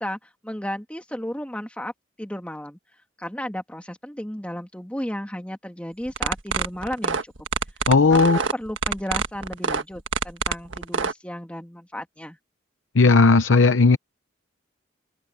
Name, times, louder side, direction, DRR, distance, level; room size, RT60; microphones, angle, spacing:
voice 1, 0.0-1.9 2.2-2.8 3.2-7.3 8.1-12.4, equal, 5° left, 2.3 m, -34 dB
sound 1, 6.1-11.1, right 5 dB, 75° right, 1.5 m, -25 dB
voice 2, 7.9-8.4 12.9-14.0, left 4 dB, 80° left, 0.8 m, -15 dB
open air
head